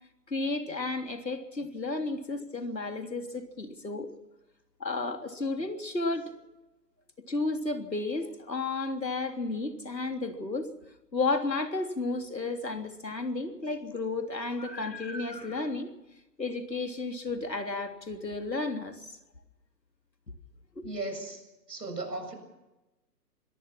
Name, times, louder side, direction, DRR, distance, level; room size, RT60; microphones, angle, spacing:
voice 1, 0.3-4.1 4.8-6.5 7.3-10.7 11.1-15.9 16.4-19.2 20.7-20.8, left 3 dB, 85° left, 5 dB, 3.3 m, -32 dB
voice 2, 20.8-22.3, right 2 dB, 75° right, 6 dB, 7.4 m, -37 dB
25.0 x 18.5 x 5.9 m, 1.0 s
figure-of-eight pair, 130°, 49 cm